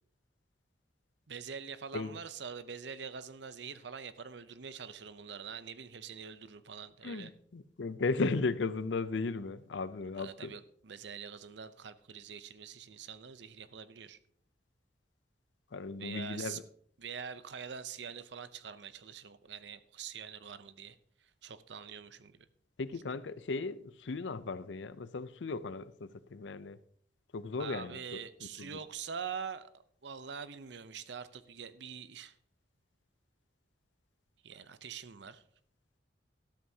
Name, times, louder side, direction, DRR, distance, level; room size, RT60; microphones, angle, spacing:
voice 1, 1.3-7.3 10.2-14.2 16.0-16.6 17.0-22.5 27.6-32.3 34.4-35.4, right 6 dB, 75° right, 0.7 m, -44 dB
voice 2, 7.0-10.5 15.7-16.6 22.8-26.8 27.3-28.2 28.6-28.8, left 3 dB, 85° left, 0.6 m, -36 dB
13.0 x 12.5 x 2.8 m
head